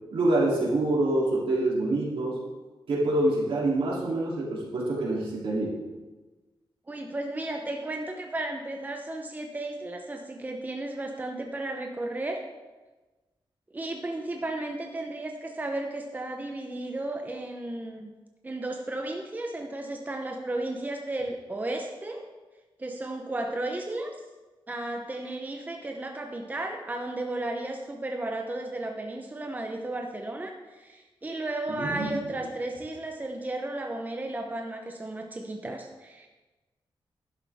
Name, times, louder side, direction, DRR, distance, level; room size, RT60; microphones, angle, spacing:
voice 1, 0.1-2.4 2.9-5.8 31.7-32.2, right 2 dB, 80° right, -4 dB, 3.2 m, -26 dB
voice 2, 6.9-12.4 13.7-18.1 18.4-22.3 22.8-24.1 24.7-36.3, right 2 dB, 20° right, 3 dB, 0.9 m, -34 dB
11.5 x 11.0 x 3.6 m, 1.2 s
wide cardioid pair, 145°, 9 cm